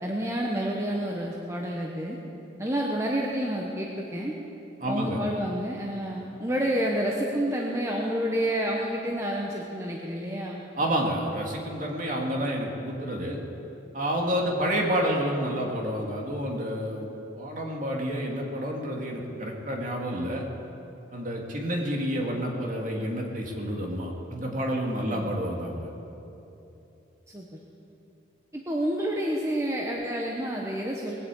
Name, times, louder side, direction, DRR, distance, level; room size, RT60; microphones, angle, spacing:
voice 1, 0.0-2.2 2.6-4.3 4.9-10.6 25.0-25.3 27.3-27.6 28.5-31.2, equal, 15° right, -2 dB, 1.1 m, -29 dB
voice 2, 4.8-5.2 10.8-13.4 13.9-17.1 17.3-20.4 21.1-25.9, equal, 40° right, 0 dB, 2.3 m, -29 dB
20.5 x 8.3 x 8.4 m, 3.0 s
head